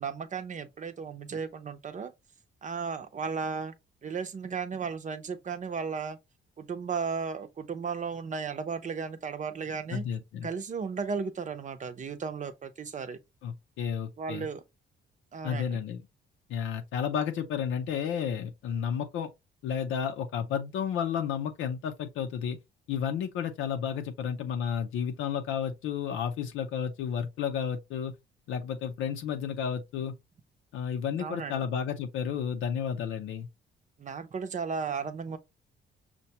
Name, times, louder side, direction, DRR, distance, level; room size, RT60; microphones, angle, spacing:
voice 1, 0.0-2.1 2.6-3.7 4.0-6.2 6.6-10.0 10.4-13.2 14.2-14.6 15.3-15.8 31.1-31.6 34.0-35.4, right 5 dB, 40° right, 0.7 m, -35 dB
voice 2, 9.9-10.5 13.4-14.5 15.4-16.0 16.5-19.3 19.6-22.6 22.9-28.1 28.5-30.2 30.7-33.5, left 8 dB, 80° left, 0.6 m, -32 dB
5.7 x 2.2 x 2.8 m
cardioid pair, 90°, 20 cm